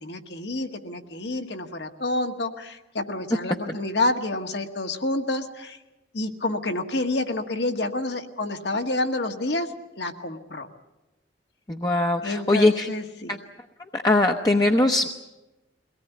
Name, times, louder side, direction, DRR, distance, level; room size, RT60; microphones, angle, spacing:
voice 1, 0.0-5.8 6.1-10.7 12.2-13.4, left 2 dB, 70° left, 5 dB, 1.7 m, -28 dB
voice 2, 11.7-12.9 13.9-15.1, left 2 dB, 20° left, 2 dB, 0.9 m, -21 dB
23.5 x 18.5 x 9.2 m, 1.0 s
head